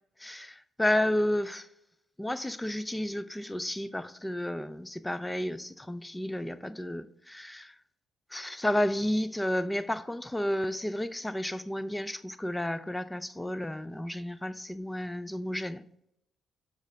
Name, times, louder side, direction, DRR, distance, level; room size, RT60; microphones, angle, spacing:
voice 1, 0.2-1.7 2.2-7.8 8.3-15.8, left 1 dB, 10° left, 0.5 m, -32 dB
6.5 x 6.1 x 5.2 m
cardioid pair, 90°, 0 cm